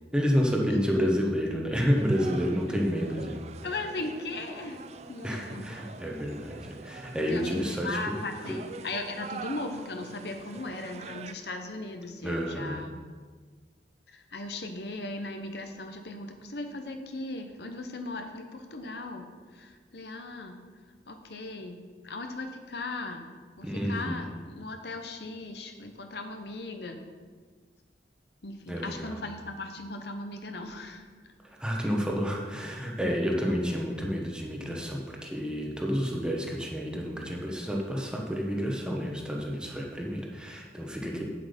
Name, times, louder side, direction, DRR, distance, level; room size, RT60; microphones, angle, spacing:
voice 1, 0.1-3.4 5.2-8.1 8.5-8.6 12.2-12.8 23.6-24.3 28.7-29.2 31.4-41.3, equal, 5° right, -1 dB, 1.1 m, -30 dB
sound 1, 1.9-11.3, right 4 dB, 35° right, 0.4 m, -45 dB
voice 2, 3.6-4.8 5.1-5.7 7.2-13.0 14.1-19.2 19.5-20.6 21.1-21.8 22.0-23.3 23.6-27.0 28.4-31.0 41.1-41.3, left 2 dB, 65° left, 5 dB, 0.9 m, -38 dB
8.5 x 7.8 x 5.2 m, 1.5 s
head